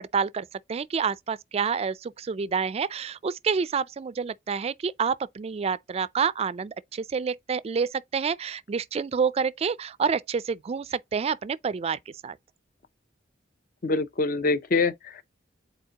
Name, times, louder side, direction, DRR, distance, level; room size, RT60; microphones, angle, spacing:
voice 1, 0.0-12.4, right 6 dB, 35° right, 0.3 m, -28 dB
voice 2, 13.8-15.2, left 3 dB, 50° left, 0.5 m, -25 dB
10.0 x 4.3 x 2.8 m
head